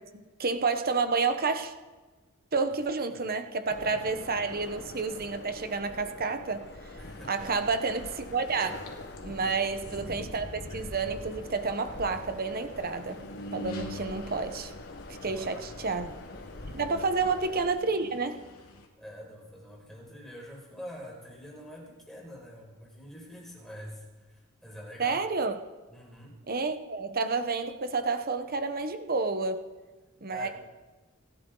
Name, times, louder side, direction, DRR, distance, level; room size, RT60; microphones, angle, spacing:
voice 1, 0.1-1.7 2.5-6.7 7.3-8.8 9.2-13.2 13.5-14.7 15.2-16.1 16.7-18.4 25.0-25.6 26.5-29.6 30.2-30.5, right 4 dB, 45° right, 8 dB, 1.1 m, -30 dB
sound 1, 3.7-17.7, left 2 dB, 50° left, 1.3 m, -44 dB
sound 2, 7.0-18.9, equal, 85° left, 2.7 m, -47 dB
voice 2, 7.0-7.5 9.4-9.7 15.2-15.7 16.8-17.0 19.0-25.2 25.9-26.4 30.3-30.5, equal, ahead, -4 dB, 5.4 m, -46 dB
29.0 x 11.5 x 3.9 m, 1.3 s
head